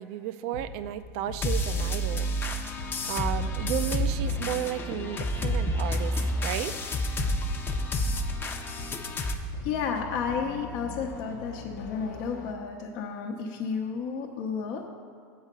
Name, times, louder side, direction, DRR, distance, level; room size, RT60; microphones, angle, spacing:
voice 1, 0.0-2.3 3.1-6.2 6.4-6.7, right 12 dB, 60° right, 12 dB, 0.5 m, -33 dB
sound 1, 0.5-12.5, left 3 dB, 90° left, 0.9 m, -42 dB
sound 2, 1.4-9.3, equal, 20° left, 0.7 m, -29 dB
voice 2, 9.6-14.9, left 6 dB, 55° left, 0 dB, 0.9 m, -32 dB
7.3 x 4.9 x 6.7 m, 2.3 s
supercardioid pair, 120°, 9 cm